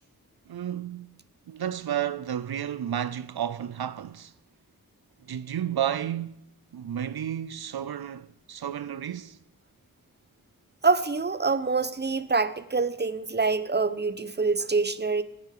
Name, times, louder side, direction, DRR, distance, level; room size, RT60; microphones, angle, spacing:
voice 1, 0.5-1.1 1.5-4.3 5.3-9.4, right 10 dB, 90° right, 0.6 m, -32 dB
voice 2, 10.8-15.2, right 4 dB, 30° right, 0.9 m, -25 dB
18.0 x 10.0 x 6.7 m
wide cardioid pair, 60°, 37 cm